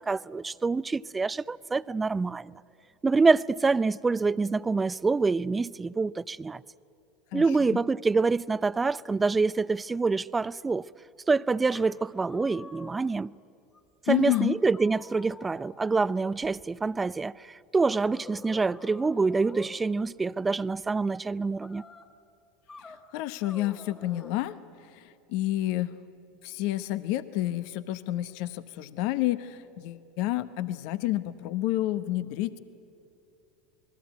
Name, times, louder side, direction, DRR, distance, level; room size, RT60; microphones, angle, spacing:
voice 1, 0.0-2.5 3.0-6.6 7.3-10.8 11.3-13.3 14.1-21.8, right 4 dB, 20° right, 0.5 m, -26 dB
sound 1, 11.7-13.2 13.7-13.8 14.3-16.7 17.9-19.8 21.6-22.1 22.7-23.0 23.4-24.4, left 3 dB, 25° left, 2.5 m, -47 dB
voice 2, 14.1-14.6 22.9-24.6 24.9-26.0 26.4-32.6, left 15 dB, 60° left, 1.0 m, -30 dB
27.0 x 20.5 x 9.3 m
hypercardioid pair, 80°, 0 cm